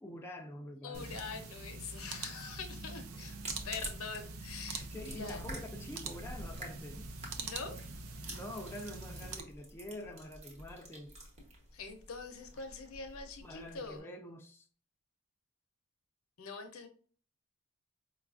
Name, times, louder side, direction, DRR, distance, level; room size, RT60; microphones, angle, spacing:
voice 1, 0.0-1.2 4.9-7.1 8.3-11.2 13.4-14.7, left 1 dB, 10° left, 0.3 m, -46 dB
voice 2, 0.8-3.4 3.6-5.4 7.4-7.8 11.7-14.1 16.4-16.9, left 5 dB, 70° left, 0.6 m, -44 dB
Computer Mouse Clicks, 0.9-9.4, right 4 dB, 70° right, 0.5 m, -44 dB
Sticky Mouth Sounds, 3.3-14.0, right 1 dB, 30° right, 0.9 m, -49 dB
4.7 x 2.3 x 2.4 m
head